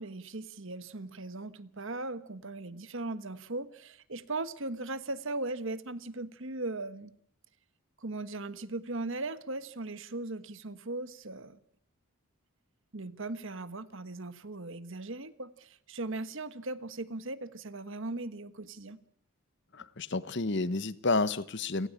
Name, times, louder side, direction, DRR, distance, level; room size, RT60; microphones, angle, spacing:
voice 1, 0.0-7.1 8.0-11.6 12.9-19.0, right 2 dB, 60° right, 14 dB, 1.4 m, -38 dB
voice 2, 19.7-21.9, left 3 dB, 50° left, 16 dB, 1.1 m, -30 dB
29.5 x 17.5 x 8.8 m, 0.66 s
head